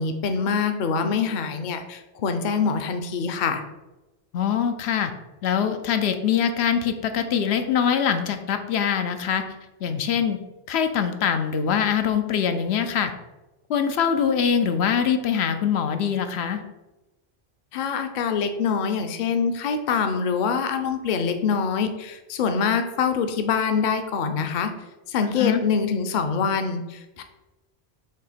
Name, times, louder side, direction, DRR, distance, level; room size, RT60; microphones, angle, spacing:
voice 1, 0.0-3.6 17.7-24.7 25.1-27.2, left 6 dB, 55° left, 7 dB, 0.7 m, -25 dB
voice 2, 4.3-5.1 5.4-9.4 9.8-10.4 10.7-13.1 13.7-16.6 25.4-25.6, left 7 dB, 80° left, 7 dB, 0.8 m, -23 dB
6.8 x 2.8 x 4.9 m, 1.0 s
omnidirectional pair, 1.1 m